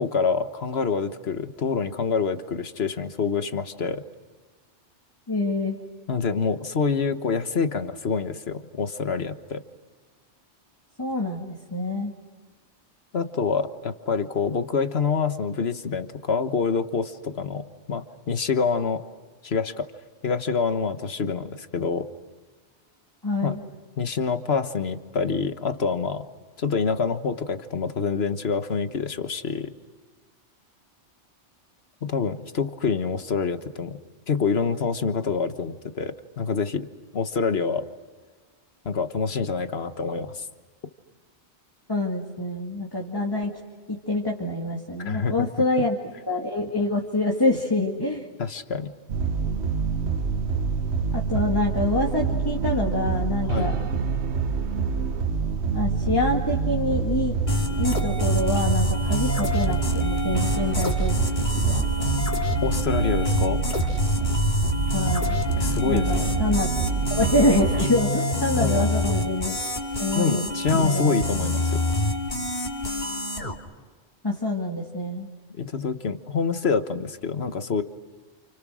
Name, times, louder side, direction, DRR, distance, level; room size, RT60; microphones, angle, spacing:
voice 1, 0.0-4.0 6.1-9.6 13.1-19.0 19.4-19.9 20.2-22.1 23.4-23.5 24.0-26.2 26.6-29.7 32.0-34.0 34.3-36.9 37.1-37.9 38.8-40.4 45.0-45.5 48.4-48.9 53.5-53.7 61.7-61.8 62.6-63.6 65.6-66.3 68.5-68.9 70.1-71.8 75.6-77.8, left 5 dB, 65° left, 9 dB, 1.5 m, -26 dB
voice 2, 5.3-5.8 11.0-12.1 23.2-23.6 41.9-43.5 43.9-46.0 46.3-48.3 51.1-53.9 55.7-57.4 57.8-61.2 61.6-61.7 62.0-62.2 64.9-65.4 65.8-66.7 67.1-69.6 70.0-71.2 74.2-75.3, left 2 dB, 20° left, 0 dB, 2.2 m, -26 dB
sound 1, 49.1-67.9, right 5 dB, 70° right, 1.3 m, -26 dB
sound 2, 57.5-73.5, left 1 dB, 40° left, 2.7 m, -27 dB
30.0 x 29.0 x 6.3 m, 1.5 s
omnidirectional pair, 1.2 m